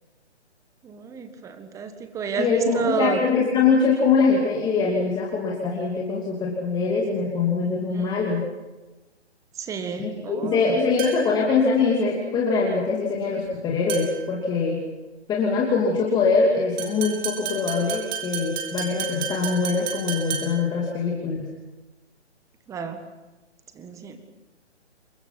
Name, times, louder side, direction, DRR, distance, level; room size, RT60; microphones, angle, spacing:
voice 1, 0.8-3.2 7.9-8.3 9.6-10.8 22.7-23.0 23.7-24.2, right 6 dB, 10° right, 8 dB, 1.6 m, -30 dB
voice 2, 2.4-8.4 10.0-14.8 15.3-21.5, left 4 dB, 10° left, -3 dB, 2.7 m, -23 dB
sound 1, 11.0-11.4 13.9-14.3 16.8-20.7, right 8 dB, 40° right, 7.0 m, -32 dB
28.5 x 22.0 x 6.0 m, 1.1 s
figure-of-eight pair, 145°, 34 cm